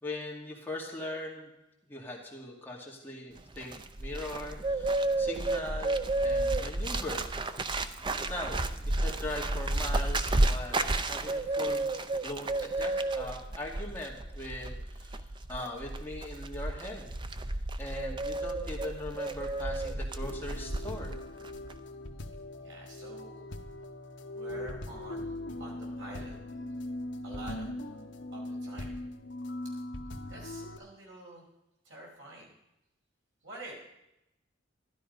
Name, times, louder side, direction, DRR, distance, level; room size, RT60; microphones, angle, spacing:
voice 1, 0.0-1.5 1.9-3.7 4.0-7.2 8.3-17.1 17.5-21.1, left 1 dB, 10° left, -2 dB, 2.1 m, -40 dB
Bird, 3.4-21.2 21.4-21.8, right 2 dB, 25° right, 0.5 m, -32 dB
sound 1, 20.2-30.8, left 1 dB, 60° left, 1.1 m, -40 dB
voice 2, 22.6-23.5 24.3-25.3 25.6-26.3 27.2-27.7 28.3-29.0 30.3-31.4 31.8-32.5 33.4-33.8, right 2 dB, 70° right, -3 dB, 5.0 m, -47 dB
13.0 x 11.5 x 5.2 m, 0.88 s
head